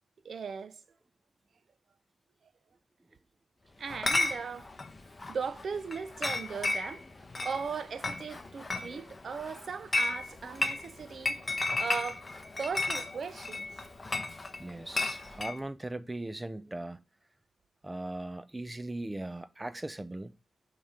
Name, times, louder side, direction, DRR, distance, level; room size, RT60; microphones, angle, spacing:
voice 1, 0.2-0.8 3.8-4.7 5.3-7.0 7.4-11.4 11.8-12.3 12.6-13.9, right 5 dB, 55° right, 0.6 m, -38 dB
Chatter / Chink clink, 3.9-15.6, left 2 dB, 25° left, 0.9 m, -34 dB
voice 2, 14.6-17.0 17.8-20.3, right 2 dB, 15° right, 0.5 m, -39 dB
5.5 x 5.1 x 4.3 m
cardioid pair, 90°, 0 cm